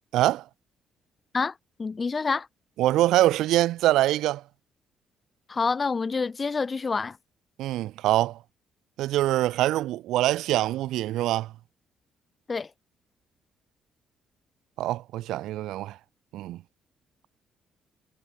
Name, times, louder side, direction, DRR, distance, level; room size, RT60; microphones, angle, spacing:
voice 1, 0.1-0.4 2.8-4.4 7.6-8.4 9.0-11.5 14.8-16.0 16.3-16.6, right 15 dB, 90° right, 3.4 m, -24 dB
voice 2, 1.3-2.5 5.5-7.2 12.5-12.7, left 4 dB, 30° left, 7.8 m, -27 dB
cardioid pair, 90°, 0 cm